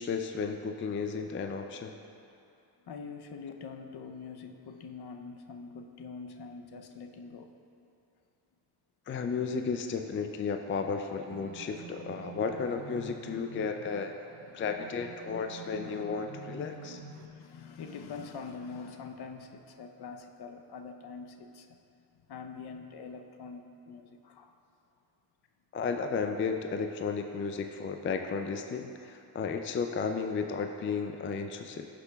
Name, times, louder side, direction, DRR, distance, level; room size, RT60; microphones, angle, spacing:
voice 1, 0.0-1.9 9.1-14.1 14.5-17.0 25.7-31.9, left 5 dB, 30° left, 6 dB, 0.4 m, -33 dB
voice 2, 2.8-7.6 14.3-14.9 15.4-21.8 22.1-24.6 29.9-30.0, left 5 dB, 55° left, 5 dB, 0.7 m, -45 dB
sound 1, 10.7-17.3, right 7 dB, 80° right, 0.6 m, -49 dB
13.0 x 6.1 x 2.3 m, 2.6 s
cardioid pair, 75°, 46 cm